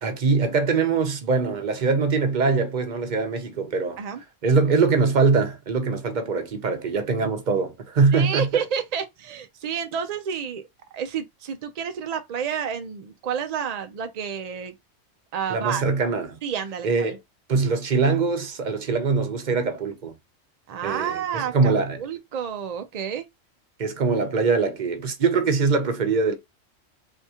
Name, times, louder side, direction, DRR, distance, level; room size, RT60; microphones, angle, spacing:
voice 1, 0.0-4.0 4.4-8.5 15.5-16.4 16.8-17.2 17.5-20.1 20.8-22.0 23.8-26.3, right 4 dB, 45° right, 0.7 m, -22 dB
voice 2, 8.1-10.7 10.9-14.7 15.3-15.8 16.4-17.2 20.7-23.3, right 7 dB, 70° right, 0.3 m, -30 dB
3.5 x 2.7 x 2.8 m
omnidirectional pair, 1.3 m